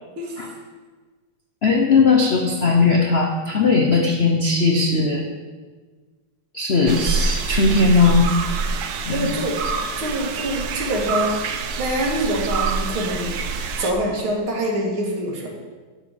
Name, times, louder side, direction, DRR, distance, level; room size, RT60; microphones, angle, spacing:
voice 1, 1.6-5.2 6.5-8.3 9.1-9.3, left 4 dB, 75° left, 2 dB, 0.5 m, -18 dB
sound 1, 6.9-13.9, right 4 dB, 60° right, 1.1 m, -26 dB
voice 2, 9.1-9.6 10.0-11.4 11.8-13.4 13.8-15.5, right 1 dB, 85° right, -1 dB, 2.6 m, -25 dB
11.0 x 7.1 x 5.0 m, 1.4 s
omnidirectional pair, 2.3 m